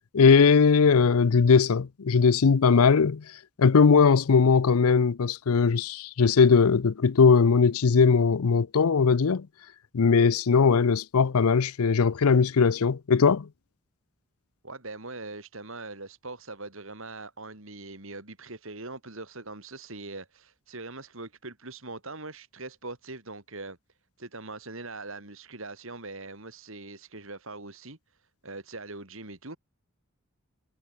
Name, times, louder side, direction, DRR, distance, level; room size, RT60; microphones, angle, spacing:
voice 1, 0.1-3.2 3.6-9.5 9.9-13.5, left 5 dB, 80° left, 0.6 m, -20 dB
voice 2, 14.6-23.8 24.2-29.6, right 3 dB, 60° right, 3.4 m, -41 dB
head